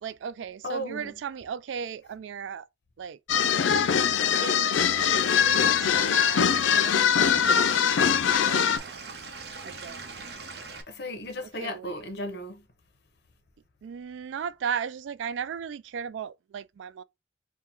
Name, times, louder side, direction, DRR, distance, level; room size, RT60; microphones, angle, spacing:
voice 1, 0.0-2.6 3.0-3.2 4.4-4.8 5.4-8.2 8.5-9.1 9.6-10.4 11.6-12.0 13.8-17.0, right 7 dB, 80° right, 0.3 m, -36 dB
voice 2, 0.6-1.1 10.9-12.6, equal, 60° left, 0.8 m, -35 dB
sound 1, 3.3-8.8, left 7 dB, 90° left, 0.4 m, -22 dB
Stream / Liquid, 4.8-10.8, right 4 dB, 60° right, 0.7 m, -41 dB
3.7 x 2.2 x 4.4 m
head